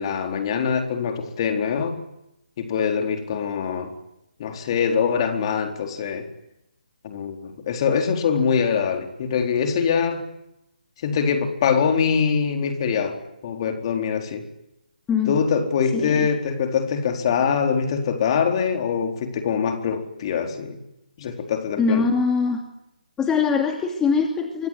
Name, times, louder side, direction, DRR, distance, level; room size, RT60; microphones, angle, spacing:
voice 1, 0.0-2.0 2.6-3.9 4.4-6.3 7.0-10.2 11.0-14.4 15.3-20.8 21.2-22.1, left 6 dB, 35° left, 5 dB, 4.3 m, -23 dB
voice 2, 15.1-15.4 15.9-16.3 21.8-22.6 23.2-24.7, left 5 dB, 10° left, 3 dB, 2.7 m, -22 dB
25.0 x 23.0 x 9.8 m, 0.85 s
figure-of-eight pair, 145°, 5 cm